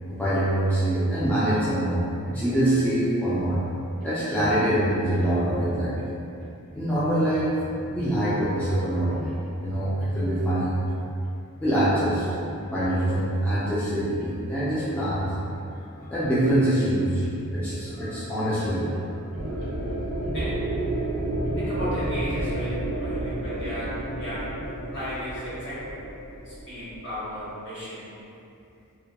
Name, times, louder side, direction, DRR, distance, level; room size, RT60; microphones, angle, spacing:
voice 1, 0.1-3.6 4.0-6.1 6.7-7.5 7.9-10.8 11.6-12.3 12.7-15.3 16.0-17.2 17.5-19.1 19.5-19.7, right 1 dB, 5° left, -12 dB, 0.3 m, -24 dB
sound 1, 3.4-3.8 4.0-4.1 4.3-6.0 6.4-8.5 8.8-10.7 11.1-11.3 11.7-13.3 13.6-14.3 14.6-15.6 16.0-18.1 18.4-18.5 18.7-19.0 19.3-22.6, equal, 85° left, 1.0 m, -40 dB
sound 2, 19.3-27.5, right 1 dB, 85° right, 0.4 m, -31 dB
voice 2, 20.3-20.7 21.6-24.6 24.9-25.9 26.3-28.1, equal, 55° left, -11 dB, 1.1 m, -35 dB
2.2 x 2.1 x 2.8 m, 2.6 s
head